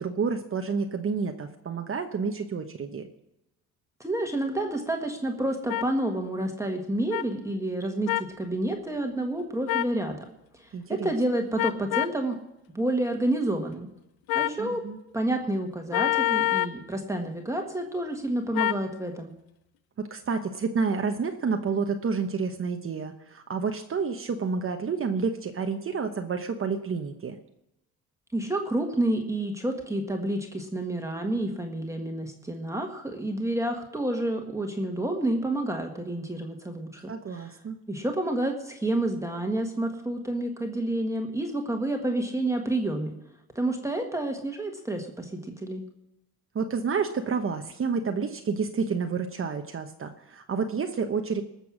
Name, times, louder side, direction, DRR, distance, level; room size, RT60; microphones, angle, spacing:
voice 1, 0.0-3.1 10.7-11.1 14.6-15.0 20.0-27.4 37.1-37.8 46.5-51.4, right 5 dB, 35° right, 5 dB, 1.0 m, -29 dB
voice 2, 4.0-10.2 10.5-12.4 12.7-13.9 14.3-14.8 15.1-19.3 28.3-37.5 37.9-43.1 43.5-45.8, right 1 dB, 10° right, 2 dB, 1.6 m, -29 dB
sound 1, 5.7-5.9 7.1-7.2 8.1-8.3 9.7-10.0 11.6-12.2 14.3-14.6 15.9-16.8 18.5-18.8, left 15 dB, 85° left, 0.7 m, -26 dB
19.5 x 6.9 x 6.2 m, 0.88 s
cardioid pair, 100°, 35 cm